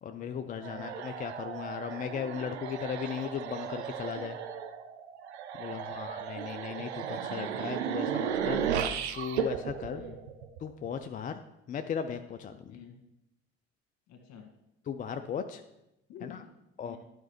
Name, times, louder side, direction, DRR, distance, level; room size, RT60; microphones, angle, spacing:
voice 1, 0.0-4.4 5.6-8.6 9.1-10.0 10.6-11.4 11.7-12.8 14.9-15.6 16.8-17.0, left 7 dB, 25° left, 8 dB, 0.4 m, -37 dB
sound 1, 0.6-10.9, right 8 dB, 70° right, 0.7 m, -35 dB
voice 2, 5.7-6.1 9.9-10.2 12.7-13.0 14.1-14.5 16.1-17.0, left 7 dB, 50° left, 4 dB, 1.6 m, -49 dB
12.5 x 5.0 x 3.1 m, 0.88 s
figure-of-eight pair, 55°, 34 cm